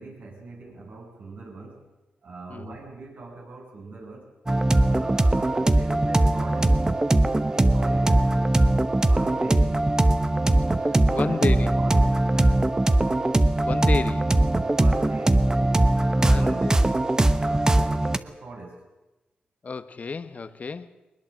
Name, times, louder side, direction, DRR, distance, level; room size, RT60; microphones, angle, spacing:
voice 1, 0.0-1.9 2.2-4.4 4.8-6.8 7.4-8.3 8.9-9.9 10.9-12.7 14.6-15.6 15.9-18.9, right 2 dB, 70° right, 0 dB, 6.9 m, -41 dB
sound 1, 4.5-18.2, right 1 dB, 20° right, 1.1 m, -21 dB
voice 2, 11.1-11.7 13.6-14.3 16.2-16.8 19.6-20.9, left 4 dB, 50° left, 11 dB, 1.3 m, -31 dB
21.5 x 20.0 x 7.5 m, 1.0 s
cardioid pair, 70°, 3 cm